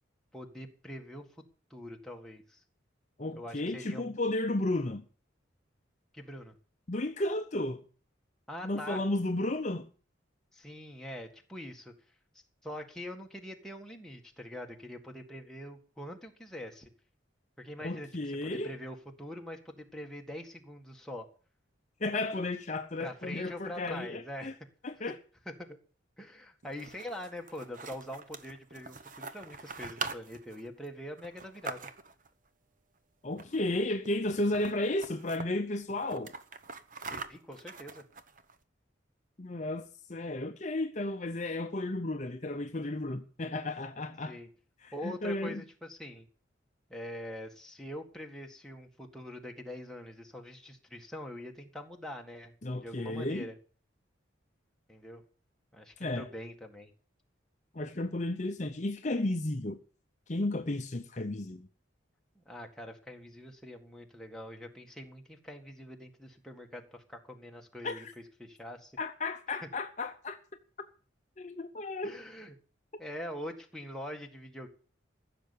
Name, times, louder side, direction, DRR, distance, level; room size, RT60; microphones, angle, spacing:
voice 1, 0.3-1.2 1.7-2.6 3.3-4.1 6.1-6.5 8.5-9.0 10.5-11.9 12.6-16.9 17.6-21.3 23.0-24.5 25.4-25.8 26.2-31.9 37.0-38.0 44.2-44.5 44.9-46.3 46.9-52.5 52.8-53.6 54.9-55.2 55.7-56.9 62.3-68.1 68.4-69.0 72.0-72.5 73.0-74.7, left 1 dB, 5° left, 1.7 m, -44 dB
voice 2, 3.2-5.0 6.9-7.8 8.6-9.9 17.8-18.7 22.0-24.5 24.8-25.2 33.2-36.3 39.4-44.4 44.8-45.6 52.6-53.5 56.0-56.2 57.7-59.8 60.3-61.7 67.8-68.1 69.0-70.4 71.4-72.2, left 2 dB, 35° left, 0.7 m, -33 dB
sound 1, 26.6-32.3 33.3-33.8 34.0-34.1 34.4-35.5 35.9-38.5, right 4 dB, 40° right, 1.0 m, -43 dB
15.0 x 6.8 x 8.5 m
head